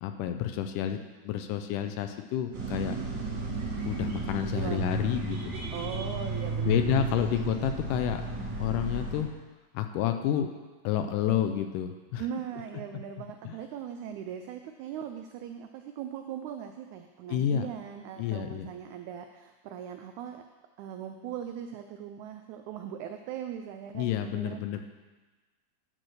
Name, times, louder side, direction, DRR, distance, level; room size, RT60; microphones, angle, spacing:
voice 1, 0.0-1.0 1.2-3.0 3.9-5.5 6.7-8.2 8.6-9.3 9.7-10.5 10.8-12.3 13.5-13.6 17.3-17.7 18.2-18.7 23.9-24.8, left 10 dB, 80° left, 7 dB, 2.0 m, -29 dB
sound 1, 2.5-9.2, right 3 dB, 70° right, 3.5 m, -33 dB
voice 2, 4.4-5.0 5.7-7.3 12.2-20.4 20.8-24.6, right 9 dB, 85° right, 6 dB, 1.7 m, -39 dB
12.5 x 4.6 x 6.5 m, 1.2 s
omnidirectional pair, 3.9 m